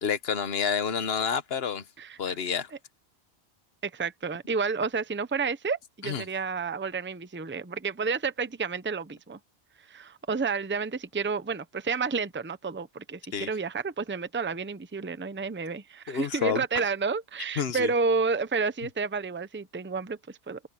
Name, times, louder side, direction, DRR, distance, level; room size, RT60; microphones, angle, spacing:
voice 1, 0.0-1.8 2.2-2.7 6.0-6.3 13.3-13.5 16.1-16.6 17.6-17.9, left 7 dB, 65° left, 1.2 m, -29 dB
voice 2, 2.0-2.4 3.8-9.4 9.9-20.6, right 4 dB, 10° right, 0.7 m, -30 dB
open air
omnidirectional pair, 1.1 m